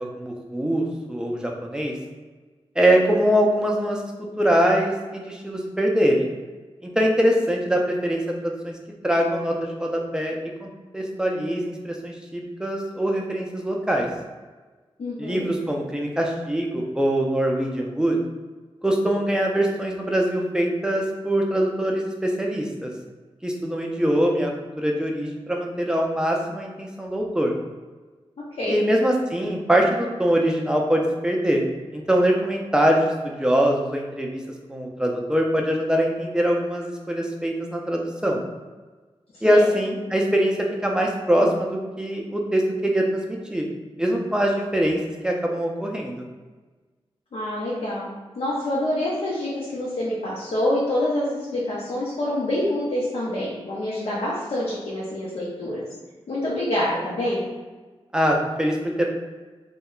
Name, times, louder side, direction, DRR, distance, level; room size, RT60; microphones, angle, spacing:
voice 1, 0.0-1.9 2.8-4.0 4.4-6.3 7.0-8.8 9.0-14.1 15.2-18.2 18.8-22.9 23.4-24.5 24.8-27.5 28.7-31.6 31.9-34.4 34.7-38.4 39.4-40.6 40.8-41.7 42.0-43.2 43.5-43.7 44.0-46.2 58.1-59.1, equal, 5° right, 0 dB, 0.4 m, -23 dB
voice 2, 15.0-15.4 28.6-28.8 39.3-39.7 47.3-55.8 56.3-57.4, left 1 dB, 70° left, -7 dB, 0.6 m, -26 dB
2.2 x 2.1 x 3.6 m, 1.3 s
wide cardioid pair, 135°, 10 cm